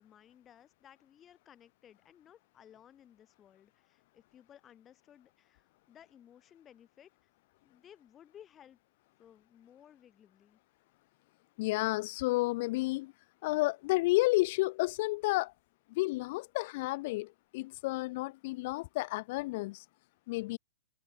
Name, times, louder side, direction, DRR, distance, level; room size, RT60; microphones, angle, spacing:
voice 1, 0.0-7.3 7.6-8.8 9.2-10.6, left 9 dB, 20° left, 3.1 m, -58 dB
voice 2, 11.6-13.1 13.4-15.5 15.9-19.8 20.3-20.6, left 21 dB, 40° left, 0.3 m, -31 dB
hypercardioid pair, 155°, 0 cm